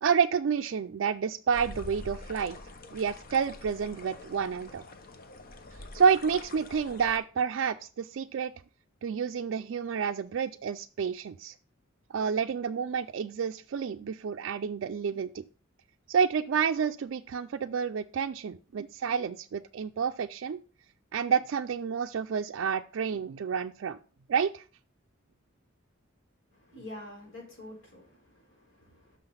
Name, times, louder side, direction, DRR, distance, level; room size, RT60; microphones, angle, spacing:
voice 1, 0.0-2.6 2.9-4.8 5.9-8.5 9.0-11.5 12.1-15.5 16.1-20.6 21.1-24.0 24.3-24.6, right 6 dB, 65° right, 5 dB, 0.4 m, -29 dB
sound 1, 1.5-7.2, left 2 dB, 45° left, 0.8 m, -45 dB
voice 2, 26.5-29.2, left 1 dB, 65° left, -2 dB, 3.8 m, -47 dB
6.3 x 5.8 x 5.5 m, 0.38 s
head